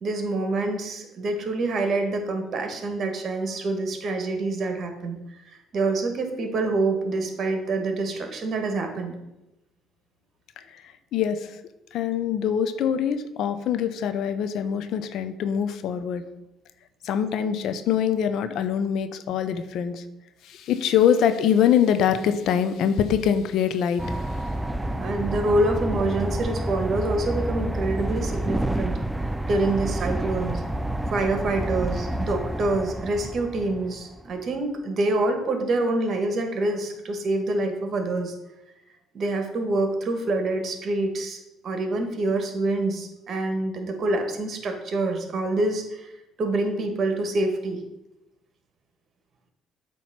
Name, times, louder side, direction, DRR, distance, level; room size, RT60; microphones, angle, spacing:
voice 1, 0.0-5.2 5.7-9.2 24.9-29.0 29.5-30.6 31.1-38.3 39.1-41.4 41.6-46.1 46.4-47.8, right 2 dB, 50° right, 5 dB, 1.4 m, -26 dB
voice 2, 11.1-11.6 11.9-16.2 17.0-20.0 20.4-24.2, left 8 dB, 70° left, 10 dB, 0.6 m, -24 dB
sound 1, 24.0-34.2, right 1 dB, 10° right, 0.4 m, -29 dB
8.0 x 3.0 x 5.9 m, 0.92 s
supercardioid pair, 75°, 0 cm